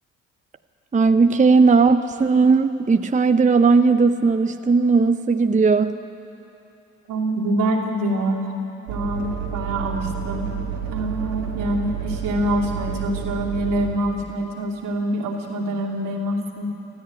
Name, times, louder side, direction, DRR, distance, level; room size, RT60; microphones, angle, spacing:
voice 1, 0.9-6.0, right 4 dB, 20° right, 8 dB, 0.7 m, -17 dB
voice 2, 7.1-8.5 8.9-10.6 10.9-16.7, right 1 dB, 70° right, -1 dB, 2.8 m, -25 dB
sound 1, 8.9-13.9, right 7 dB, 85° right, 2.2 m, -30 dB
20.5 x 13.5 x 9.3 m, 3.0 s
hypercardioid pair, 50°, 34 cm